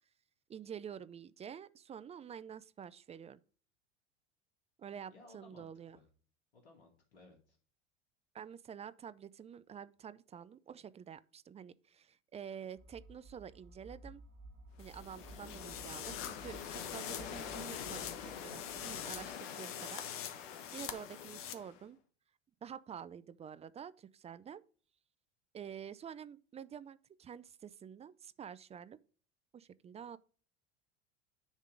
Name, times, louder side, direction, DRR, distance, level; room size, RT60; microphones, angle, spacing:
voice 1, 0.5-3.4 4.8-6.0 8.3-14.2 14.8-20.0 20.7-22.0 22.6-24.6 25.5-29.0 29.5-30.2, right 8 dB, 20° right, 0.4 m, -48 dB
voice 2, 5.1-6.1 6.5-7.6, left 2 dB, 80° left, 2.2 m, -60 dB
sound 1, 12.8-19.4, right 2 dB, 45° right, 2.0 m, -56 dB
sound 2, 14.8-21.9, left 7 dB, 60° left, 1.3 m, -46 dB
sound 3, 14.8-21.5, left 10 dB, 40° left, 1.0 m, -46 dB
9.7 x 3.7 x 5.0 m
hypercardioid pair, 80°, 32 cm